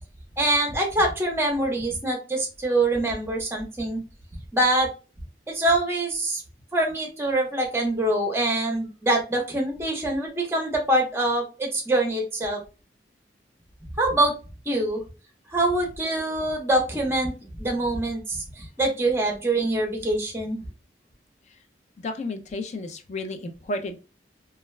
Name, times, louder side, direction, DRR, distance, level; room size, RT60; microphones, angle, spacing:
voice 1, 0.4-4.0 4.5-4.9 5.5-6.4 6.7-12.6 14.0-14.3 14.7-15.0 15.5-17.3 17.6-20.6, right 1 dB, 15° right, 1 dB, 0.6 m, -24 dB
voice 2, 22.0-24.0, left 2 dB, 40° left, 6 dB, 0.4 m, -32 dB
2.3 x 2.2 x 3.0 m, 0.32 s
head